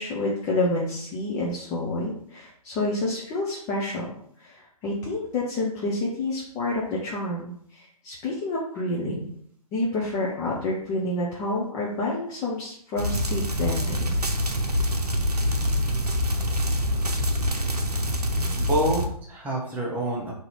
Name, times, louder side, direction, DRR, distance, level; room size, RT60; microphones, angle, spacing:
voice 1, 0.0-4.0 4.4-9.3 9.7-14.3, left 2 dB, 15° left, -4 dB, 0.5 m, -29 dB
sound 1, 13.0-19.1, equal, 80° right, 0.7 m, -25 dB
voice 2, 18.3-20.3, right 1 dB, 10° right, -4 dB, 0.8 m, -27 dB
3.8 x 2.8 x 4.4 m, 0.65 s
figure-of-eight pair, 125°, 20 cm